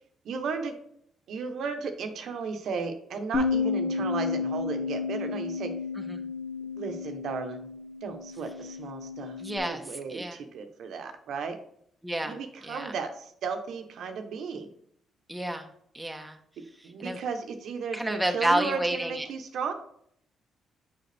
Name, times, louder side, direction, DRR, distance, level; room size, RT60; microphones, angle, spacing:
voice 1, 0.2-0.8 1.3-5.7 6.8-7.6 8.0-9.4 9.6-11.6 12.2-14.7 16.8-19.7, right 5 dB, 70° right, 6 dB, 1.0 m, -35 dB
Bass guitar, 3.3-9.6, left 5 dB, 35° left, 1.4 m, -32 dB
voice 2, 9.4-10.4 12.0-12.9 15.3-15.7 15.9-16.4 16.8-17.2 17.9-19.3, right 1 dB, 5° right, 4 dB, 1.0 m, -30 dB
6.6 x 6.1 x 3.4 m, 0.67 s
cardioid pair, 90°, 0 cm